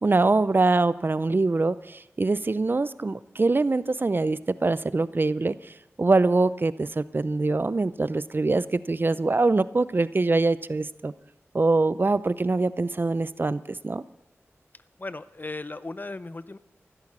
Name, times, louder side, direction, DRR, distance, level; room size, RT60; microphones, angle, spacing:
voice 1, 0.0-11.1 11.5-14.0, right 3 dB, 45° right, 16 dB, 0.5 m, -24 dB
voice 2, 15.0-16.6, left 2 dB, 35° left, 14 dB, 0.6 m, -36 dB
15.0 x 13.0 x 6.0 m, 0.89 s
wide cardioid pair, 55°, 5 cm